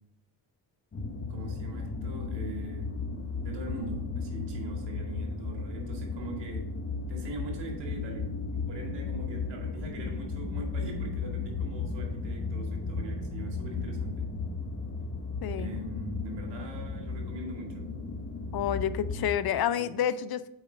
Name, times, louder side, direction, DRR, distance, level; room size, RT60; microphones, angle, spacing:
sound 1, 0.9-19.3, left 4 dB, 35° left, 1.1 m, -35 dB
voice 1, 1.3-2.9 3.4-6.7 7.1-14.3 15.5-17.9 19.2-20.2, right 2 dB, 85° right, 0 dB, 2.3 m, -42 dB
voice 2, 18.5-20.5, left 10 dB, 60° left, 14 dB, 0.6 m, -29 dB
7.2 x 4.9 x 5.2 m, 0.82 s
cardioid pair, 90°, 41 cm